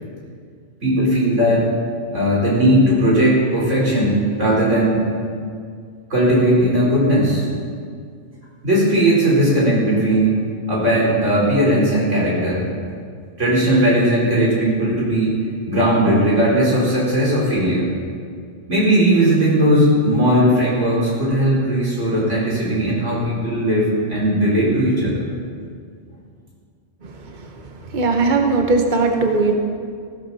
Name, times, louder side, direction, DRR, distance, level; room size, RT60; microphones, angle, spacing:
voice 1, 0.8-1.7 2.1-5.1 6.1-7.5 8.6-10.4 10.7-12.7 13.4-15.4 15.7-17.9 18.7-25.2, right 1 dB, 85° right, -6 dB, 4.9 m, -17 dB
voice 2, 27.0-27.6 27.9-29.5, right 3 dB, 40° right, 3 dB, 1.3 m, -19 dB
15.5 x 13.5 x 4.3 m, 2.1 s
omnidirectional pair, 1.2 m